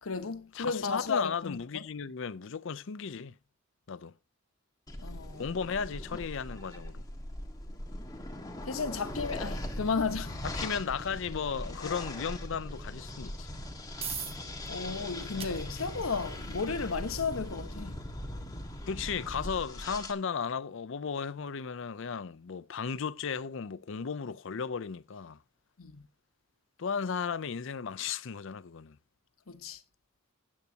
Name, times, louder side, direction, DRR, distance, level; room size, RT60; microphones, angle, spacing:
voice 1, 0.0-1.8 5.0-5.4 8.7-10.4 11.8-12.0 14.7-18.0 25.8-26.0 29.5-29.8, left 5 dB, 90° left, 1.0 m, -34 dB
voice 2, 0.5-3.3 3.9-4.1 5.4-7.0 10.4-13.5 18.9-25.4 26.8-29.0, left 6 dB, 65° left, 0.5 m, -35 dB
sound 1, 4.9-20.1, left 1 dB, 20° left, 1.6 m, -40 dB
sound 2, 14.0-28.4, right 6 dB, 30° right, 1.1 m, -50 dB
13.5 x 9.5 x 2.8 m
head